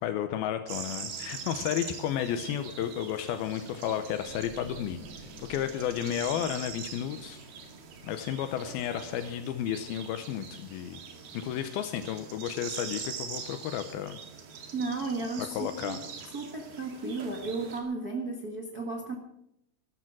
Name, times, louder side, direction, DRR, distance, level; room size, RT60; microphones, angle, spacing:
voice 1, 0.0-5.0 5.5-7.4 8.0-11.0 11.3-14.2 15.6-16.0, left 10 dB, 80° left, 8 dB, 2.6 m, -32 dB
sound 1, 0.7-17.8, right 6 dB, 75° right, 4.1 m, -43 dB
sound 2, 4.2-9.3 9.6-9.8, right 1 dB, 25° right, 6.7 m, -52 dB
voice 2, 14.7-16.0 16.3-19.1, right 3 dB, 55° right, 1 dB, 1.0 m, -34 dB
14.5 x 13.5 x 6.2 m, 0.78 s
omnidirectional pair, 4.4 m